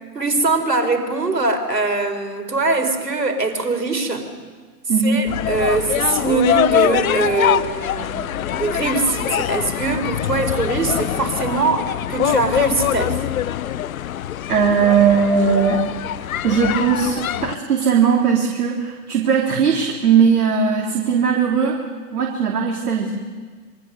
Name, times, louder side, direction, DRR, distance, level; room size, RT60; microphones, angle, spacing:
voice 1, 0.1-4.3 5.0-13.2, right 3 dB, 90° right, 6 dB, 4.2 m, -22 dB
voice 2, 4.9-5.2 14.5-15.8 16.4-21.8 22.1-23.2, right 6 dB, 70° right, -1 dB, 3.6 m, -18 dB
sound 1, 5.3-17.5, left 11 dB, 60° left, 0.8 m, -23 dB
27.0 x 23.5 x 6.8 m, 1.5 s
figure-of-eight pair, 120°, 47 cm